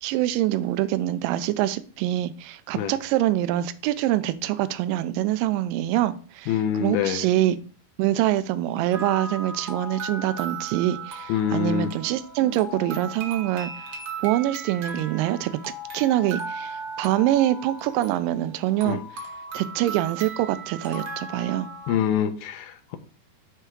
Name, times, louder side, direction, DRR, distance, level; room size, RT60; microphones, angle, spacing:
voice 1, 0.0-7.6 8.0-13.7 14.2-15.5 15.9-19.0 19.5-21.7, right 13 dB, 80° right, 13 dB, 2.1 m, -25 dB
voice 2, 6.5-7.3 11.3-11.9 18.9-19.0 21.9-23.0, left 9 dB, 80° left, 7 dB, 2.4 m, -25 dB
sound 1, 8.9-22.0, right 3 dB, 65° right, 1.4 m, -37 dB
9.0 x 3.6 x 4.6 m, 0.39 s
omnidirectional pair, 4.3 m